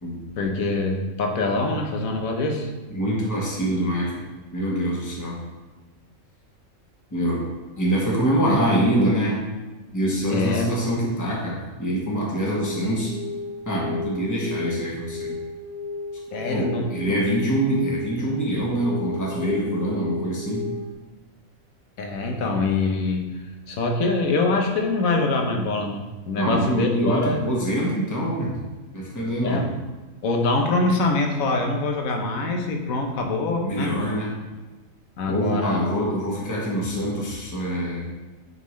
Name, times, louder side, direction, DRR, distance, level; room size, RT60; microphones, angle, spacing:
voice 1, 0.4-2.7 10.3-10.7 16.3-17.2 22.0-23.4 23.7-27.4 29.4-29.7 30.2-34.0 35.2-35.8, left 2 dB, 90° left, 3 dB, 1.3 m, -24 dB
voice 2, 2.9-4.2 4.5-5.4 7.1-7.4 7.8-9.4 9.9-13.1 13.7-15.4 16.5-20.6 26.4-28.6 28.9-29.7 33.6-34.3 35.3-38.1, right 1 dB, 15° left, -4 dB, 1.2 m, -25 dB
sound 1, 12.5-20.9, left 3 dB, 65° right, 1.0 m, -34 dB
9.4 x 3.8 x 3.1 m, 1.2 s
omnidirectional pair, 1.4 m